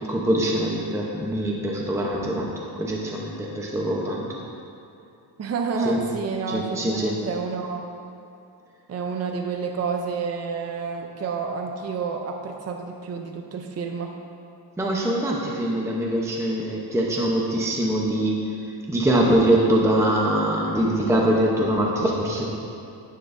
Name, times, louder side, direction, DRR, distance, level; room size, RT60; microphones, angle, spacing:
voice 1, 0.1-2.5 2.8-4.2 5.8-6.0 6.5-7.2 14.8-18.4 18.9-22.4, right 1 dB, 5° right, -3 dB, 0.8 m, -23 dB
voice 2, 5.4-7.9 8.9-14.1, right 5 dB, 35° right, 3 dB, 0.6 m, -29 dB
10.5 x 9.2 x 2.6 m, 2.6 s
wide cardioid pair, 140°, 48 cm